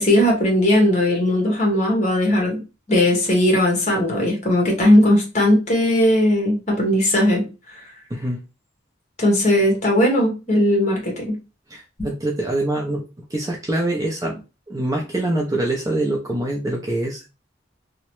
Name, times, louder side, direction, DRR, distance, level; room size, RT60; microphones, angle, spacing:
voice 1, 0.0-2.6 2.9-7.5 9.2-11.3, left 1 dB, 35° left, 0 dB, 1.0 m, -18 dB
voice 2, 11.7-13.0 13.3-14.4 14.7-17.3, right 1 dB, 15° right, 0 dB, 0.4 m, -24 dB
2.8 x 2.1 x 3.0 m, 0.30 s
head